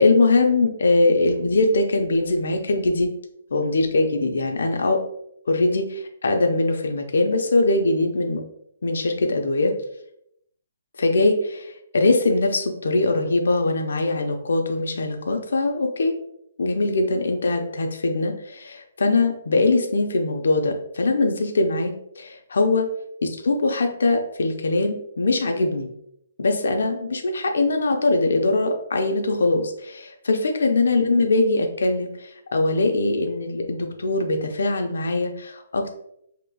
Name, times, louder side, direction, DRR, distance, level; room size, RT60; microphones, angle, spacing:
voice 1, 0.0-3.1 3.5-5.0 5.5-8.4 8.8-9.7 11.0-16.2 16.6-22.9 23.2-25.9 26.4-35.9, left 2 dB, 75° left, 4 dB, 0.6 m, -22 dB
4.6 x 2.9 x 2.3 m, 0.74 s
hypercardioid pair, 155°, 0 cm